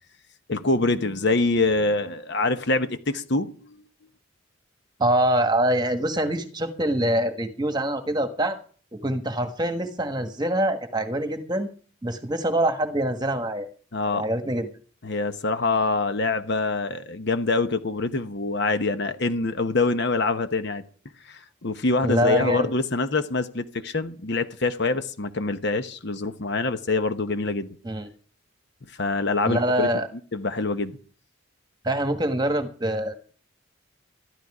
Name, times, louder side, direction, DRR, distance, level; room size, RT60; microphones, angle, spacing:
voice 1, 0.5-3.8 13.9-14.3 15.0-20.8 21.3-27.8 29.0-29.9 30.3-31.0, left 3 dB, 55° left, 1.0 m, -25 dB
voice 2, 5.0-8.6 9.0-11.7 12.0-13.7 14.0-14.7 22.0-22.7 27.8-28.1 29.4-30.1 31.8-33.1, right 1 dB, 20° right, 1.5 m, -24 dB
13.5 x 12.0 x 4.9 m
head